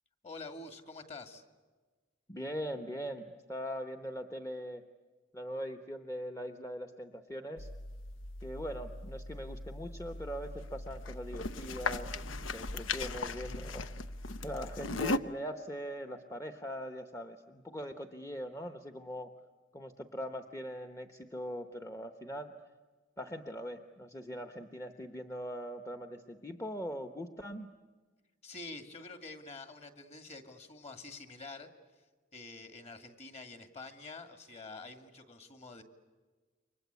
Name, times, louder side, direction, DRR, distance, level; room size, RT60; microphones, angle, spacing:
voice 1, 0.2-1.4 28.4-31.7 32.3-35.8, left 3 dB, 35° left, 7 dB, 2.2 m, -47 dB
voice 2, 2.3-4.8 5.3-7.7 8.4-13.9 14.4-19.3 19.7-22.5 23.2-27.7, equal, 15° left, 6 dB, 1.0 m, -41 dB
sound 1, 7.6-15.2, left 3 dB, 85° left, 0.9 m, -38 dB
29.5 x 24.5 x 8.2 m, 1.4 s
head